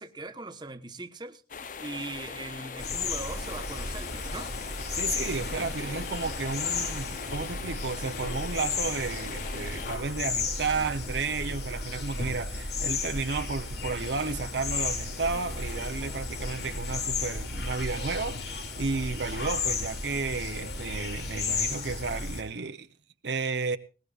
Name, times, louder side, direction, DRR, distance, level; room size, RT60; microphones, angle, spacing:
voice 1, 0.0-1.4 1.8-4.5, right 2 dB, 25° right, 1.1 m, -40 dB
sound 1, 1.5-10.0, left 5 dB, 45° left, 0.7 m, -41 dB
sound 2, 2.8-22.4, left 4 dB, 70° left, 2.5 m, -34 dB
voice 2, 4.9-22.9 23.2-23.8, right 4 dB, 75° right, 0.8 m, -32 dB
Wind instrument woodwind instrument, 5.3-10.1, right 1 dB, 25° left, 2.2 m, -54 dB
20.0 x 18.5 x 2.4 m
head